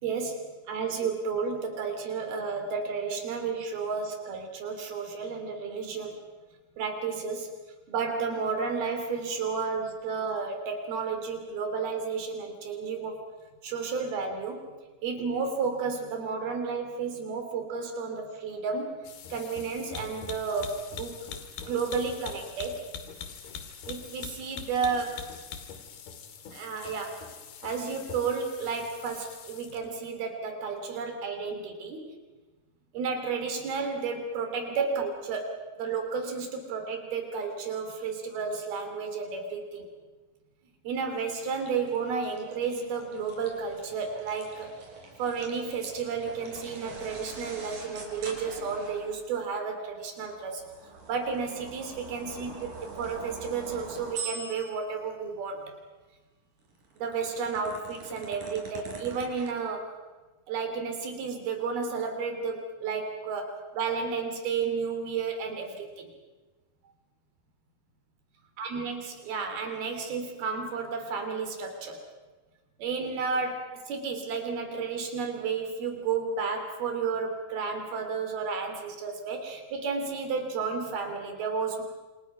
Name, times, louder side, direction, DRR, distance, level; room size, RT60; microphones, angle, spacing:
voice 1, 0.0-6.2 6.8-7.5 7.9-13.2 13.6-14.7 15.0-19.0 19.3-21.2 21.7-22.8 23.9-25.2 26.5-27.2 27.6-32.1 32.9-35.5 35.8-39.9 40.8-44.7 45.2-50.6 51.0-52.5 52.8-55.6 57.0-59.9 60.5-66.1 68.6-72.0 72.8-81.8, right 5 dB, 80° right, 5 dB, 5.1 m, -32 dB
sound 1, 19.0-29.9, left 6 dB, 85° left, 3.9 m, -43 dB
sound 2, 41.0-49.3 50.1-54.9 56.6-59.5, right 4 dB, 60° right, 5.9 m, -44 dB
28.0 x 27.5 x 5.9 m, 1.2 s
omnidirectional pair, 4.3 m